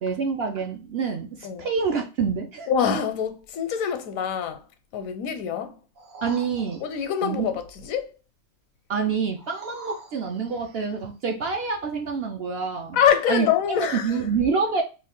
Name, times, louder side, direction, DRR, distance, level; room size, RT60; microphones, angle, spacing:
voice 1, 0.0-2.7 6.2-6.9 7.2-7.5 8.9-13.0 13.3-13.5 13.8-14.8, right 5 dB, 60° right, 0.7 m, -27 dB
voice 2, 2.7-4.6 4.9-5.8 6.8-7.6 7.9-8.1 12.9-14.1, left 8 dB, 80° left, 1.0 m, -24 dB
sound 1, 5.9-7.3 9.4-11.0 11.6-11.7, right 3 dB, 80° right, 1.3 m, -45 dB
3.1 x 2.4 x 3.6 m
omnidirectional pair, 1.4 m